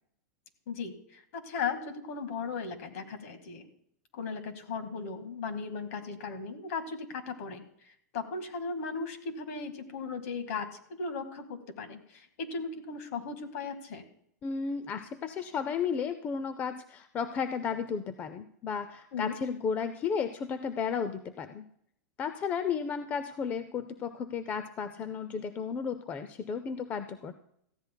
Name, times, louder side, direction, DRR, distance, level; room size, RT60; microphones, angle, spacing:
voice 1, 0.7-3.7 4.1-10.7 11.0-14.1 19.1-19.4, left 5 dB, 50° left, 8 dB, 1.8 m, -37 dB
voice 2, 14.4-21.7 22.2-27.3, left 6 dB, 15° left, 11 dB, 0.4 m, -33 dB
18.0 x 14.5 x 2.2 m, 0.70 s
supercardioid pair, 165°, 9 cm